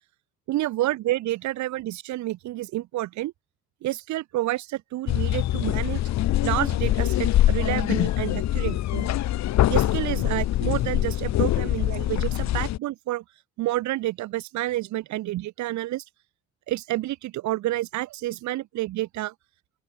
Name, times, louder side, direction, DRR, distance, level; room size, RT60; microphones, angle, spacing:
voice 1, 0.5-3.3 3.8-6.0 6.4-9.1 9.7-13.2 13.6-16.0 16.7-19.3, right 16 dB, 70° right, 0.6 m, -29 dB
sound 1, 5.1-12.8, left 14 dB, 65° left, 0.7 m, -24 dB
open air
cardioid pair, 90°, 30 cm